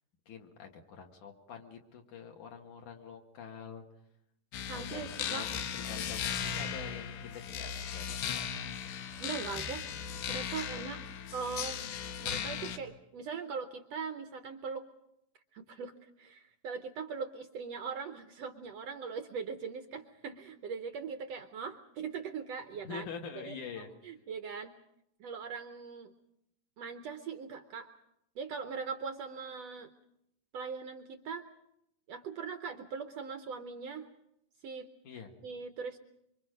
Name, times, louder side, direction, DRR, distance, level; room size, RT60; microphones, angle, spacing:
voice 1, 0.3-3.8 4.7-8.9 22.8-24.1 35.0-35.3, left 6 dB, 60° left, 3 dB, 3.1 m, -46 dB
sound 1, 4.5-12.8, left 8 dB, 90° left, 3.0 m, -37 dB
voice 2, 4.7-5.5 9.2-9.8 10.3-11.0 11.3-11.8 12.2-14.9 15.5-23.1 23.4-23.5 24.0-24.7 25.2-26.1 26.8-27.9 28.4-29.9 30.5-31.4 32.1-34.0 34.6-34.9 35.4-36.0, right 5 dB, 75° right, 7 dB, 1.5 m, -40 dB
26.0 x 25.0 x 5.1 m, 0.79 s
omnidirectional pair, 4.1 m